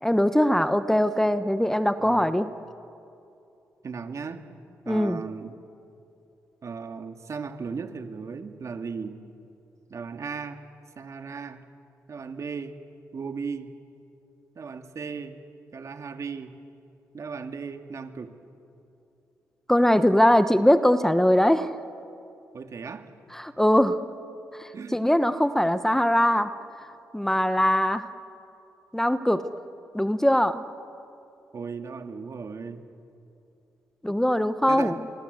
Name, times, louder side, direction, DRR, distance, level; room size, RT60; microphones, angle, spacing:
voice 1, 0.0-2.5 4.9-5.2 19.7-21.7 23.3-24.0 24.6-26.5 27.1-28.0 28.9-29.4 29.9-30.6 34.0-35.0, equal, 5° left, 11 dB, 1.1 m, -21 dB
voice 2, 2.0-2.3 3.8-4.5 4.9-5.6 6.6-9.2 9.9-10.6 11.0-11.6 12.1-12.8 13.1-13.7 14.6-15.4 15.7-16.5 17.1-18.3 22.5-23.1 24.7-25.0 31.5-32.8 34.1-34.2 34.7-34.9, right 5 dB, 55° right, 7 dB, 2.1 m, -36 dB
30.0 x 24.5 x 8.1 m, 2.8 s
cardioid pair, 65°, 6 cm